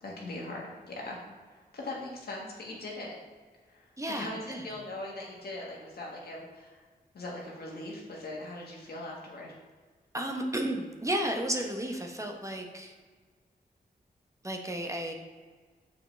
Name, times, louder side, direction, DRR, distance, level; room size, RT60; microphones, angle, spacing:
voice 1, 0.0-3.1 3.6-6.8 7.1-9.5, left 2 dB, 80° left, -3 dB, 1.6 m, -41 dB
voice 2, 4.0-4.7 10.1-12.9 14.4-15.1, right 1 dB, 20° right, 2 dB, 0.9 m, -33 dB
6.9 x 5.2 x 3.3 m, 1.5 s
cardioid pair, 75°, 16 cm